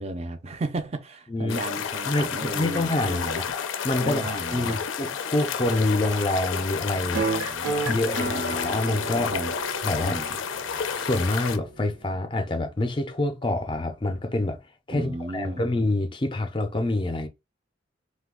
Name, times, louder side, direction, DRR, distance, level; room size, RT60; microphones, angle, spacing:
voice 1, 0.0-3.5 4.0-4.8 7.4-8.6 9.1-9.6 10.0-10.4 14.9-15.6, right 2 dB, 30° right, 0.4 m, -34 dB
voice 2, 1.3-1.6 2.1-3.4 3.8-7.3 7.9-9.3 9.8-10.2 10.9-14.6 14.9-17.3, left 2 dB, 25° left, 0.4 m, -26 dB
sound 1, 1.5-11.6, left 7 dB, 80° left, 0.4 m, -31 dB
sound 2, 7.1-12.1, right 2 dB, 80° right, 0.8 m, -32 dB
2.7 x 2.3 x 3.6 m
head